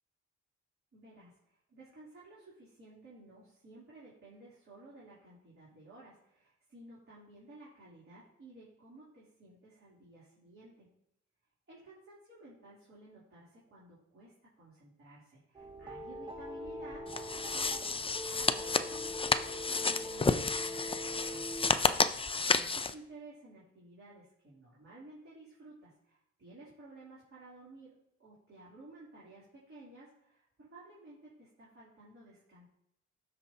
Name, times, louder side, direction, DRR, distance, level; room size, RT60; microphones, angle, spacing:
voice 1, 0.9-10.9 11.7-18.6 18.9-21.5 22.3-27.9 28.2-32.7, right 2 dB, 45° right, -8 dB, 3.1 m, -55 dB
sound 1, 15.5-21.7, equal, 15° right, 1.3 m, -43 dB
sound 2, 17.1-22.9, left 4 dB, 20° left, 0.4 m, -31 dB
12.5 x 4.3 x 2.8 m, 0.78 s
supercardioid pair, 60°, 31 cm